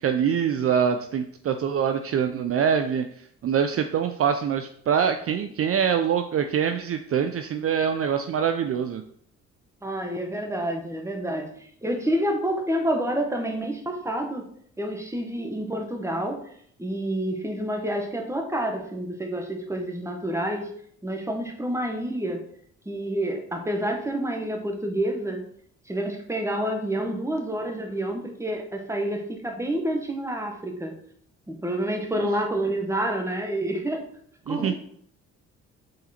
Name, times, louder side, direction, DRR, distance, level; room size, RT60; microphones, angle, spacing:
voice 1, 0.0-3.0 3.4-9.0 32.2-32.3 34.5-34.7, right 7 dB, 50° right, 8 dB, 0.5 m, -24 dB
voice 2, 9.8-14.5 14.8-16.4 16.8-20.7 21.0-22.4 22.8-25.4 25.9-31.0 31.5-34.0 34.5-34.7, right 1 dB, 10° right, 3 dB, 1.3 m, -28 dB
6.5 x 4.1 x 4.2 m, 0.65 s
cardioid pair, 90°, 30 cm